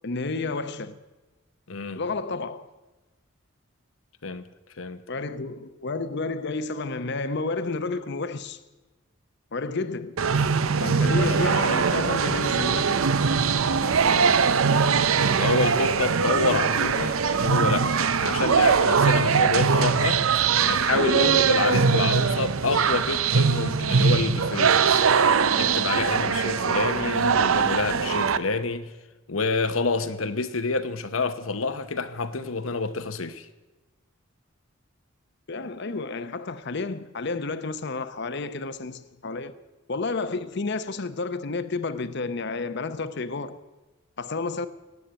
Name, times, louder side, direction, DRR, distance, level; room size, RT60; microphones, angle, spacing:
voice 1, 0.0-1.0 2.0-2.7 5.1-8.6 9.5-10.2 10.8-13.1 35.5-39.6 39.9-43.6 44.2-44.7, left 3 dB, 55° left, 0.8 m, -31 dB
voice 2, 1.7-2.0 4.2-4.4 4.8-5.0 10.9-11.0 11.3-11.8 13.6-14.4 15.4-20.2 20.6-25.1 25.5-28.9 29.3-33.5, left 3 dB, 85° left, 1.0 m, -28 dB
sound 1, 10.2-28.4, right 5 dB, 90° right, 0.7 m, -22 dB
18.0 x 8.4 x 9.1 m
head